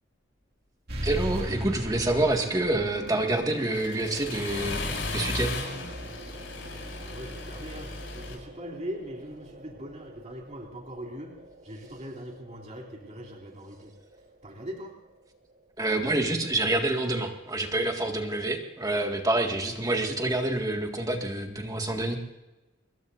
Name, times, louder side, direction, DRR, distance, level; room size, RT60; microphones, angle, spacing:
sound 1, 0.9-16.0, right 1 dB, 55° right, 2.2 m, -41 dB
voice 1, 1.0-4.8 5.1-5.6 15.8-22.2, right 2 dB, 20° right, 3 dB, 1.9 m, -27 dB
Accelerating revving vroom, 3.1-8.3, left 2 dB, 75° left, 6.5 m, -36 dB
voice 2, 6.9-13.9 14.4-14.9, equal, 35° right, 0 dB, 2.9 m, -41 dB
25.5 x 21.5 x 2.6 m, 1.0 s
head